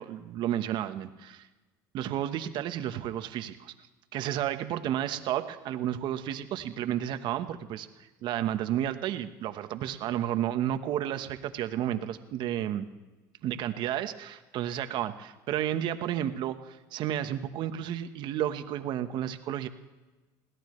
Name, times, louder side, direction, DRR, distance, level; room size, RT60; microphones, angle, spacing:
voice 1, 0.0-1.5 1.9-3.7 4.1-12.8 13.4-19.7, right 11 dB, 55° right, 9 dB, 1.2 m, -32 dB
21.5 x 16.5 x 3.2 m, 1.2 s
supercardioid pair, 115°, 9 cm